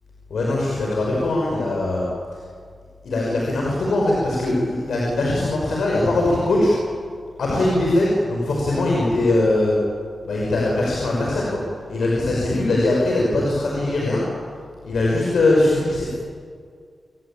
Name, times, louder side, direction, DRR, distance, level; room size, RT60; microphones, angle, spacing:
voice 1, 0.3-2.1 3.0-6.7 7.4-9.8 10.3-11.5 11.9-14.2 14.8-16.1, left 2 dB, 85° left, -3 dB, 6.2 m, -21 dB
28.0 x 20.5 x 9.1 m, 2.1 s
wide cardioid pair, 125°, 0 cm